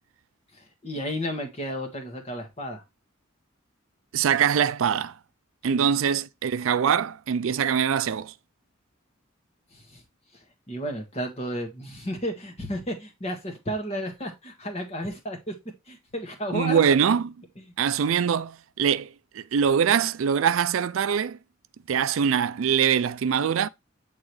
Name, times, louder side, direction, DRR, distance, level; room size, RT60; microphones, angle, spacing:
voice 1, 0.5-2.8 5.7-5.9 9.7-10.0 10.3-15.6 15.9-16.8 17.6-17.7, equal, 30° left, 1.6 m, -33 dB
voice 2, 4.1-5.2 5.6-8.3 16.5-17.3 17.8-19.1 19.3-21.4 21.9-23.7, right 7 dB, 80° right, 0.4 m, -23 dB
8.6 x 3.9 x 3.2 m
head